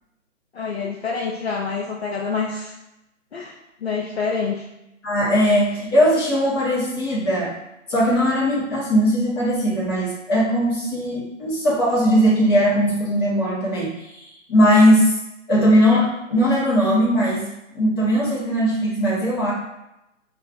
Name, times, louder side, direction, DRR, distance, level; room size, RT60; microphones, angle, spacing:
voice 1, 0.5-2.7 3.3-3.5 3.8-4.6, left 5 dB, 50° left, -3 dB, 0.5 m, -26 dB
voice 2, 5.0-7.6 7.9-15.1 15.5-19.5, equal, 20° left, -8 dB, 0.9 m, -19 dB
5.2 x 2.4 x 2.4 m, 0.92 s
hypercardioid pair, 160°, 39 cm